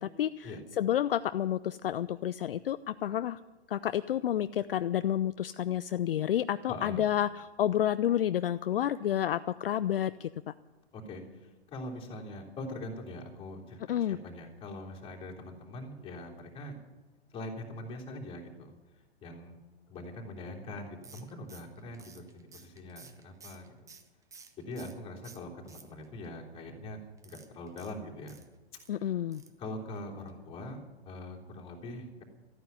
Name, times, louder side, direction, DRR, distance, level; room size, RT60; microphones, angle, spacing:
voice 1, 0.0-3.4 3.7-10.5 13.9-14.2 28.9-29.4, left 11 dB, 60° left, 14 dB, 0.5 m, -30 dB
voice 2, 6.7-7.0 10.9-16.8 17.3-18.7 19.2-19.6 19.9-23.9 24.6-28.4 28.9-29.1 29.6-30.8 31.0-32.2, left 1 dB, 15° left, -2 dB, 3.4 m, -43 dB
sound 1, 21.0-25.0 25.2-26.2 27.2-28.9 29.3-29.6 29.9-30.0 30.3-30.4, right 5 dB, 10° right, 0.8 m, -54 dB
14.0 x 9.5 x 9.6 m, 1.1 s
figure-of-eight pair, 115°, 33 cm